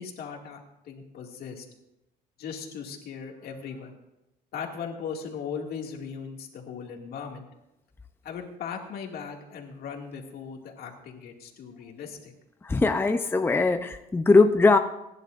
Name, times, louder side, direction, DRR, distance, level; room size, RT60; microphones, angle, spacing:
voice 1, 0.0-1.7 2.4-4.0 4.5-7.5 8.2-12.3, left 6 dB, 65° left, 2 dB, 2.3 m, -38 dB
voice 2, 12.6-14.8, left 3 dB, 15° left, 7 dB, 0.6 m, -20 dB
28.5 x 11.0 x 2.6 m, 0.89 s
cardioid pair, 110°, 17 cm